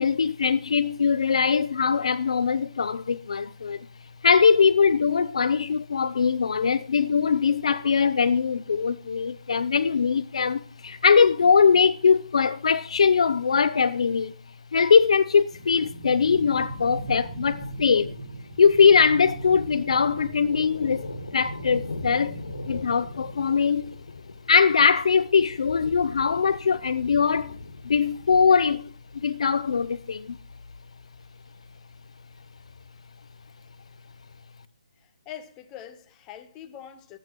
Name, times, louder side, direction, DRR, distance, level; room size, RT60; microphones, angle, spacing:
voice 1, 0.0-3.9 4.2-14.3 14.7-18.2 18.6-21.1 21.3-22.4 22.7-23.9 24.5-27.6 27.8-28.9 29.2-30.4, left 6 dB, 55° left, 0.7 m, -21 dB
sound 1, 15.5-23.5, right 2 dB, 10° right, 6.6 m, -39 dB
Thunder, 18.8-34.4, left 3 dB, 85° left, 1.9 m, -43 dB
voice 2, 35.0-37.2, left 10 dB, 15° left, 1.0 m, -43 dB
23.0 x 8.8 x 3.1 m
hypercardioid pair, 165°, 4 cm